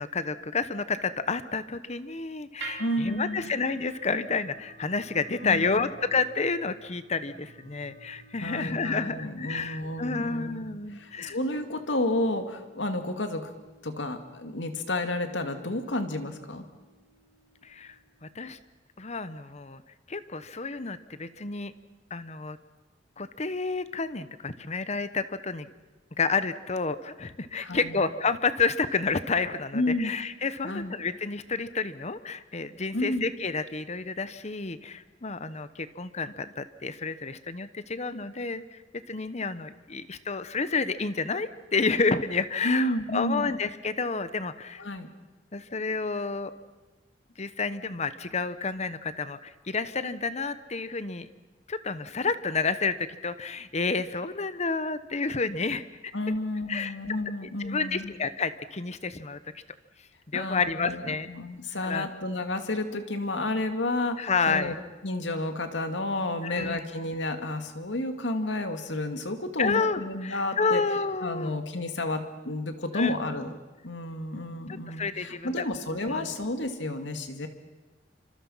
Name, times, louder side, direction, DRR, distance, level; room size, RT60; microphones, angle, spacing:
voice 1, 0.0-11.4 17.6-17.9 18.2-18.6 19.0-19.8 20.1-21.7 22.1-22.6 23.2-25.7 26.2-44.8 45.5-46.5 47.4-51.3 51.7-55.8 56.7-56.9 57.6-59.4 60.3-61.3 61.8-62.1 64.2-64.7 66.4-66.8 69.6-71.5 72.9-73.2 74.9-75.6 76.1-76.3, left 4 dB, 40° left, 13 dB, 1.0 m, -30 dB
sound 1, 2.6-18.8, right 3 dB, 75° right, 3.1 m, -51 dB
voice 2, 2.8-3.5 5.4-5.9 8.4-10.7 10.9-13.5 13.8-16.6 27.6-28.0 29.7-30.1 30.6-30.9 32.9-33.3 42.6-43.6 44.8-45.1 56.1-58.1 60.3-64.8 65.0-70.8 71.2-73.5 73.8-77.5, left 1 dB, 85° left, 7 dB, 2.3 m, -31 dB
27.0 x 25.5 x 5.7 m, 1.2 s
head